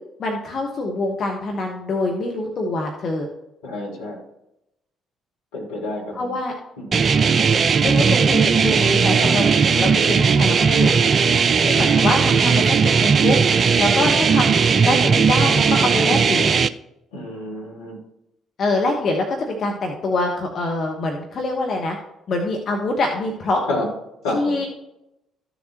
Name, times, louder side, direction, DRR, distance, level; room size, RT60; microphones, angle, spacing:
voice 1, 0.2-3.3 6.1-6.5 7.5-10.9 11.6-13.4 13.8-16.6 18.6-22.0 22.3-23.6 24.3-24.7, left 2 dB, 50° left, 1 dB, 1.3 m, -25 dB
voice 2, 3.6-4.2 5.5-6.4 6.8-7.0 11.2-11.4 17.1-18.0 23.7-23.9 24.2-24.6, left 1 dB, 75° left, -3 dB, 2.5 m, -29 dB
sound 1, 6.9-16.7, right 5 dB, 45° right, 0.4 m, -17 dB
14.0 x 7.1 x 3.0 m, 0.85 s
figure-of-eight pair, 45°, 0 cm